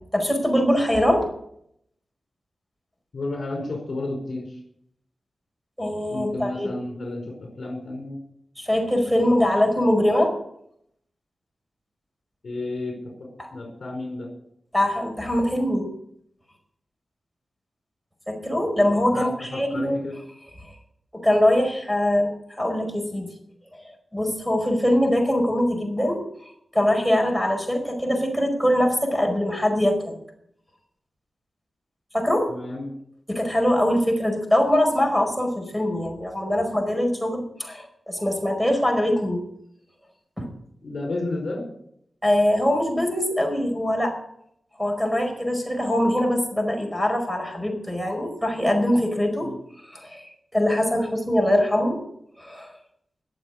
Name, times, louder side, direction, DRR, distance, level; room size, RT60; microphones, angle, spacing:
voice 1, 0.1-1.3 5.8-6.7 8.6-10.4 13.4-13.5 14.7-15.9 18.3-20.0 21.1-23.3 24.1-30.1 32.1-32.5 33.3-39.4 40.4-40.5 42.2-44.1 44.8-49.5 49.9-52.0 52.4-52.7, left 1 dB, ahead, 4 dB, 5.0 m, -22 dB
voice 2, 3.1-4.6 6.1-8.2 12.4-14.3 19.1-20.1 32.5-32.9 40.8-41.7 49.4-49.6, left 2 dB, 60° left, 1 dB, 4.7 m, -32 dB
21.0 x 7.3 x 6.5 m, 0.73 s
wide cardioid pair, 80°, 0 cm